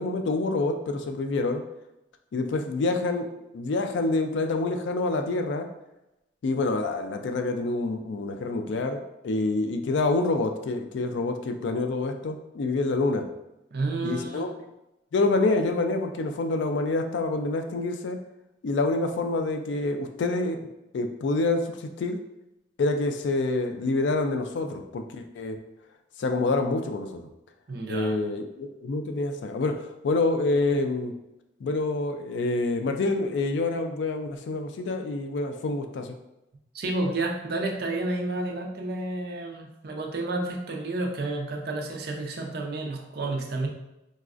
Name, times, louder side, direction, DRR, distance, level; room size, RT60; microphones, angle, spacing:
voice 1, 0.0-1.6 2.3-3.3 3.5-5.7 6.4-13.2 14.0-14.5 15.1-18.2 18.6-20.6 20.9-22.2 22.8-25.6 26.2-27.2 27.9-31.1 31.6-36.2, left 2 dB, 65° left, 6 dB, 0.3 m, -27 dB
voice 2, 13.7-14.5 27.7-28.2 36.7-43.7, right 2 dB, 50° right, 1 dB, 0.4 m, -30 dB
4.0 x 2.3 x 2.4 m, 0.92 s
head